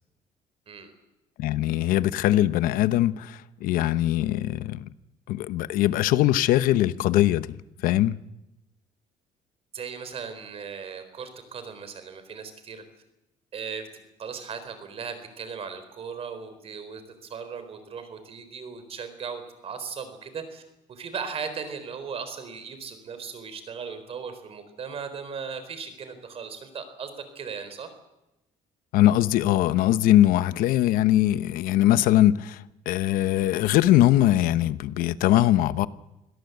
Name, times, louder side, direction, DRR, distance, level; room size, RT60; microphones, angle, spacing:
voice 1, 1.4-4.9 5.3-7.5 7.8-8.2 28.9-35.9, left 13 dB, 80° left, 0.9 m, -21 dB
voice 2, 9.7-12.8 13.5-13.9 14.2-20.6 20.9-27.9, right 6 dB, 45° right, 4.1 m, -37 dB
25.0 x 17.0 x 8.0 m
cardioid pair, 125°, 14 cm